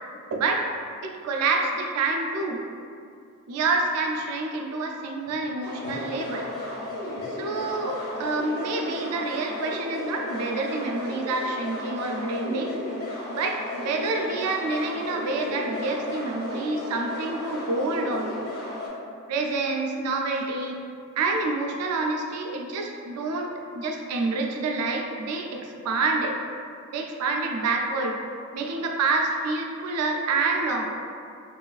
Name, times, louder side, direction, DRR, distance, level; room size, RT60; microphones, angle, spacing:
voice 1, 0.3-0.7 1.0-2.6 3.5-6.5 7.2-12.8 13.3-18.5 19.3-20.8 21.2-26.4 26.9-28.2 28.5-30.9, right 3 dB, 85° right, 3 dB, 0.3 m, -27 dB
sound 1, 5.6-18.9, left 1 dB, 45° left, 0.6 m, -34 dB
3.0 x 2.3 x 2.3 m, 2.4 s
head